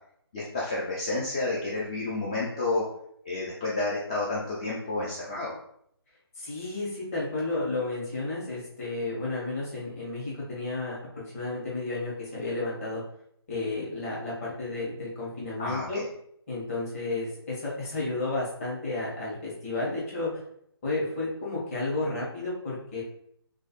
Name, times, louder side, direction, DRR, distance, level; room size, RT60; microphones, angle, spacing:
voice 1, 0.3-2.9 3.2-5.6 15.6-16.1, left 2 dB, 15° left, -6 dB, 0.3 m, -30 dB
voice 2, 6.4-11.0 11.3-13.0 13.5-16.0 16.5-20.4 20.8-23.0, left 2 dB, 35° left, -6 dB, 1.5 m, -32 dB
3.2 x 3.0 x 3.0 m, 0.70 s
figure-of-eight pair, 150°, 13 cm